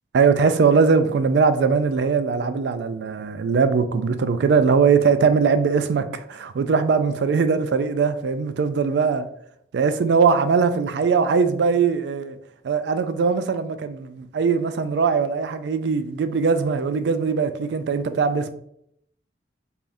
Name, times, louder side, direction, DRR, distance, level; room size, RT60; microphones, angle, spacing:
voice 1, 0.1-9.2 9.7-12.4 12.6-18.5, right 5 dB, 70° right, 0.3 m, -20 dB
3.5 x 3.3 x 2.5 m
head